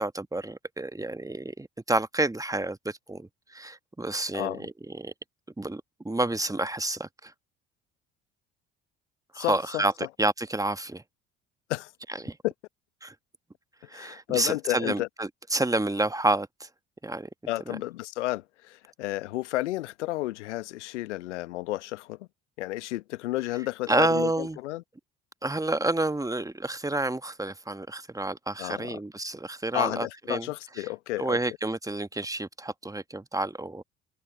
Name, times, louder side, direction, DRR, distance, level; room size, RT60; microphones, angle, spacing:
voice 1, 0.0-5.1 5.6-7.3 9.3-9.9 10.2-11.0 12.1-12.4 13.0-13.1 13.9-16.7 17.0-17.3 17.7-17.8 23.9-24.6 25.4-30.5 30.8-30.9 31.2-33.8, right 2 dB, 10° right, 1.4 m, -29 dB
voice 2, 9.3-9.8 11.7-11.9 12.4-12.5 13.9-15.1 17.5-22.2 22.6-24.8 28.6-29.0 29.7-31.4, left 17 dB, 75° left, 1.2 m, -32 dB
figure-of-eight pair, 55°, 36 cm